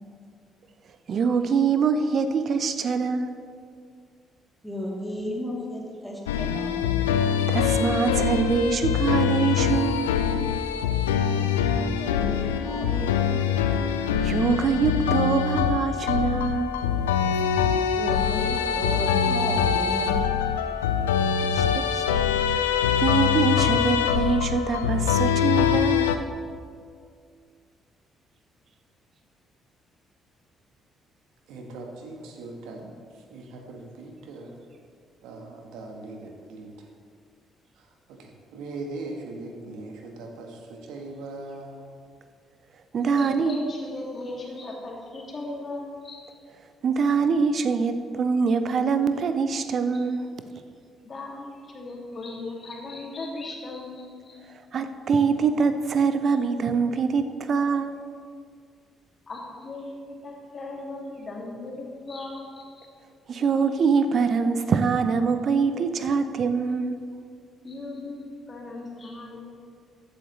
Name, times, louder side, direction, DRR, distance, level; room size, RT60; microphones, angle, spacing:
voice 1, 1.1-3.3 7.5-10.1 14.2-16.7 21.5-22.0 23.0-26.1 42.9-43.6 46.8-50.2 54.7-58.0 63.3-67.0, right 5 dB, 50° right, 10 dB, 0.6 m, -24 dB
voice 2, 4.6-6.8 11.3-13.4 17.9-20.1 21.2-21.3, left 1 dB, 5° left, -3 dB, 2.9 m, -34 dB
sound 1, 6.3-26.2, left 8 dB, 80° left, 0.4 m, -24 dB
voice 3, 31.5-34.6 35.2-36.9 37.8-42.0, right 2 dB, 65° right, 2 dB, 1.3 m, -40 dB
voice 4, 43.0-46.2 51.0-54.3 59.3-62.9 67.6-69.4, left 2 dB, 40° left, -2 dB, 2.3 m, -37 dB
14.5 x 8.1 x 3.2 m, 2.2 s
figure-of-eight pair, 45°, 0 cm